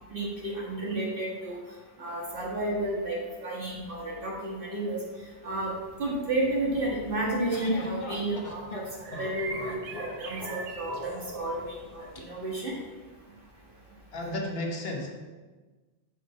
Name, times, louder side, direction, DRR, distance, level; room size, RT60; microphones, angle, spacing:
voice 1, 0.1-1.6 2.0-5.0 5.4-5.7 6.0-9.8 10.2-12.7, right 1 dB, 60° right, -5 dB, 1.8 m, -31 dB
sound 1, 5.5-13.9, right 4 dB, 80° right, 1.0 m, -46 dB
sound 2, 7.1-12.2, left 1 dB, 50° left, 0.8 m, -40 dB
voice 2, 14.1-15.1, left 1 dB, 75° left, 1 dB, 1.3 m, -32 dB
7.1 x 3.7 x 5.0 m, 1.3 s
omnidirectional pair, 1.0 m